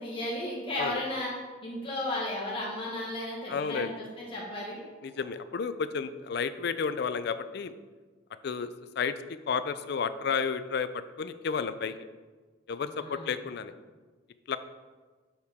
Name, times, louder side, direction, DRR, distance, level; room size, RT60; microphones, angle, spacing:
voice 1, 0.0-1.3 1.6-4.8 12.9-13.3, left 1 dB, 25° left, -5 dB, 1.4 m, -34 dB
voice 2, 3.5-3.9 5.0-7.7 8.4-8.7 9.0-9.1 9.5-10.9 11.2-11.9 12.7-13.7 14.5-14.6, left 6 dB, 55° left, 12 dB, 0.4 m, -31 dB
9.8 x 4.8 x 3.5 m, 1.4 s
head